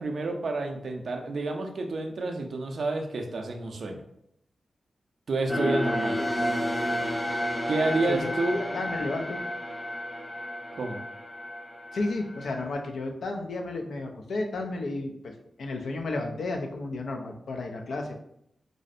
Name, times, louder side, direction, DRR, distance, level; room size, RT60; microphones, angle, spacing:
voice 1, 0.0-4.0 5.3-6.2 7.7-8.6 10.7-11.0, right 2 dB, 70° right, 3 dB, 0.4 m, -29 dB
sound 1, 5.5-12.7, equal, 30° left, 0.6 m, -31 dB
voice 2, 8.1-9.4 11.9-15.3 15.6-18.1, left 2 dB, 80° left, 3 dB, 0.4 m, -32 dB
2.5 x 2.0 x 2.4 m, 0.74 s
cardioid pair, 45°, 0 cm